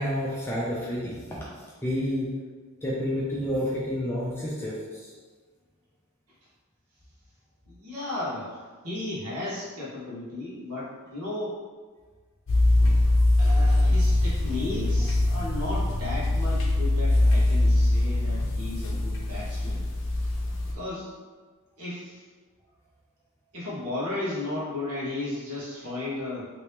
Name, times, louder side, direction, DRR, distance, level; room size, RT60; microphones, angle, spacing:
voice 1, 0.0-2.3 2.8-5.1, equal, 10° left, -6 dB, 0.4 m, -30 dB
voice 2, 7.7-11.6 13.4-19.8 20.7-21.1 21.8-22.2 23.5-26.5, left 2 dB, 85° right, -8 dB, 1.2 m, -34 dB
sound 1, 12.5-20.7, left 1 dB, 55° left, 0.6 m, -23 dB
2.9 x 2.8 x 3.4 m, 1.5 s
head